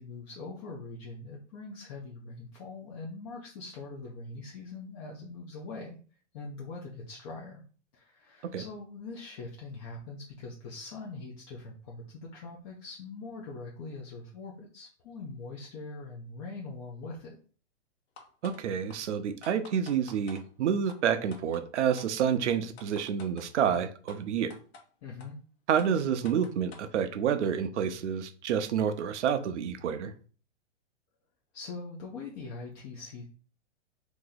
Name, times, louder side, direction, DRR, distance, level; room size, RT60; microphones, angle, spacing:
voice 1, 0.0-6.0 6.3-7.6 7.9-17.4 25.0-25.4 31.5-33.2, left 3 dB, 30° left, -2 dB, 0.6 m, -42 dB
sound 1, 18.2-18.6 18.9-19.0 19.4-20.4 20.9-21.0 21.3-21.6 22.0-22.1 22.5-23.5 24.1-24.2 24.5-24.8 25.2-25.3 25.8-26.9, left 4 dB, 60° left, 1.0 m, -49 dB
voice 2, 18.4-24.5 25.7-30.1, right 8 dB, 70° right, 9 dB, 0.7 m, -29 dB
3.0 x 2.6 x 3.9 m, 0.40 s
hypercardioid pair, 140°, 36 cm